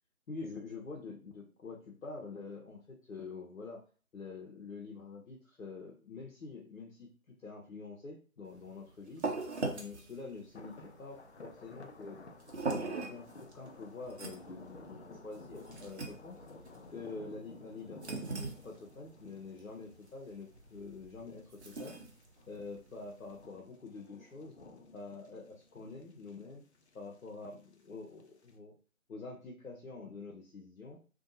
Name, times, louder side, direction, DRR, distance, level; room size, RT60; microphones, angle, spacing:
voice 1, 0.3-3.8 4.1-9.2 9.7-12.2 12.7-16.4 16.9-22.0 22.5-24.5 24.9-26.6 26.9-28.7 29.1-31.0, left 4 dB, 80° left, -2 dB, 0.8 m, -46 dB
sound 1, 8.5-23.5, right 3 dB, 50° right, 0.7 m, -42 dB
sound 2, 10.0-10.1 10.4-28.5, left 3 dB, 55° left, 0.5 m, -55 dB
2.6 x 2.2 x 2.6 m, 0.38 s
figure-of-eight pair, 160°, 42 cm